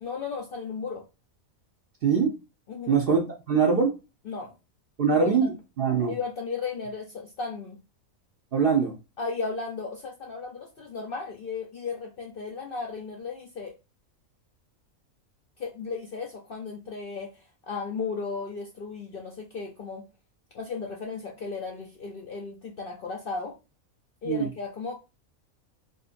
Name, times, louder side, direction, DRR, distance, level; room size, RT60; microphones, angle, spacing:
voice 1, 0.0-1.0 2.7-3.0 4.2-4.5 5.1-5.5 6.1-7.8 9.2-13.8 15.6-20.0 20.5-23.6 24.2-24.9, left 4 dB, 65° left, 0.5 m, -35 dB
voice 2, 2.0-2.3 2.9-3.9 5.0-5.5 5.8-6.1 8.5-8.9 24.2-24.5, right 6 dB, 60° right, 0.6 m, -23 dB
3.5 x 2.5 x 2.5 m
omnidirectional pair, 1.5 m